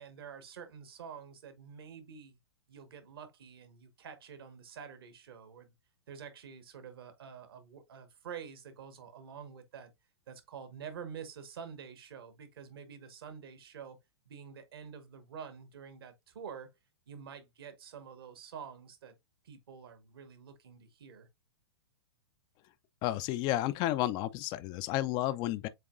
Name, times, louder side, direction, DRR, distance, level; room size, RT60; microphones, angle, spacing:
voice 1, 0.0-2.4 2.7-5.7 6.1-9.9 10.3-14.0 14.3-16.7 17.1-19.2 19.4-21.3, right 7 dB, 65° right, 1.4 m, -48 dB
voice 2, 23.0-25.7, left 15 dB, 30° left, 0.4 m, -31 dB
7.4 x 2.9 x 2.5 m
figure-of-eight pair, 110°, 14 cm